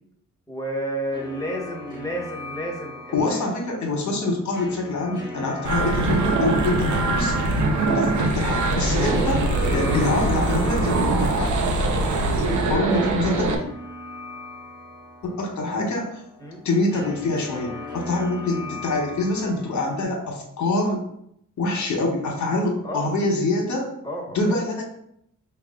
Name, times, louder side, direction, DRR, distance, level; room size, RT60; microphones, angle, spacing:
voice 1, 0.5-3.5 9.3-9.5 16.4-16.6 22.8-23.1 24.0-24.4, right 1 dB, 10° left, -2 dB, 1.2 m, -31 dB
sound 1, 1.1-20.0, left 2 dB, 10° right, 1.2 m, -39 dB
voice 2, 3.1-7.5 7.8-11.5 12.3-13.6 15.2-16.2 16.6-21.0 21.6-23.9 24.3-24.8, left 2 dB, 60° left, 1 dB, 1.1 m, -25 dB
sound 2, 5.6-13.5, right 2 dB, 60° right, 0.7 m, -22 dB
4.7 x 2.3 x 3.7 m, 0.74 s
cardioid pair, 85°, 33 cm